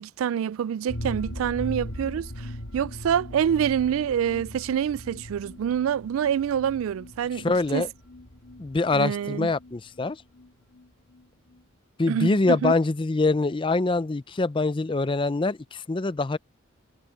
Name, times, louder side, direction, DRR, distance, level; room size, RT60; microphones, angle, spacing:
voice 1, 0.0-7.8 8.9-9.5 12.1-12.7, right 8 dB, 80° right, 0.3 m, -26 dB
sound 1, 0.9-10.5 10.8-10.9 11.1-11.2, equal, 85° left, 2.1 m, -39 dB
voice 2, 7.4-7.9 8.6-10.2 12.0-16.4, left 3 dB, 25° left, 0.5 m, -24 dB
head